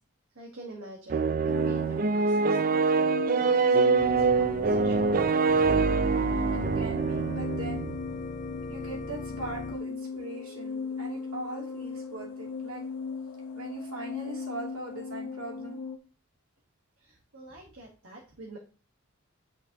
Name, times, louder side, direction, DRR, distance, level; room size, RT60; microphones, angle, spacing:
voice 1, 0.3-5.8 17.0-18.6, right 1 dB, 65° right, 0 dB, 1.5 m, -47 dB
sound 1, 1.1-8.0, right 4 dB, 40° right, 0.3 m, -25 dB
sound 2, 1.5-16.0, left 5 dB, 75° left, 0.8 m, -38 dB
Organ, 4.0-9.8, left 3 dB, 30° left, 0.5 m, -40 dB
voice 2, 6.5-7.9 8.7-12.8 13.5-15.8, right 2 dB, 80° right, -2 dB, 2.8 m, -40 dB
9.0 x 5.2 x 2.9 m, 0.37 s
head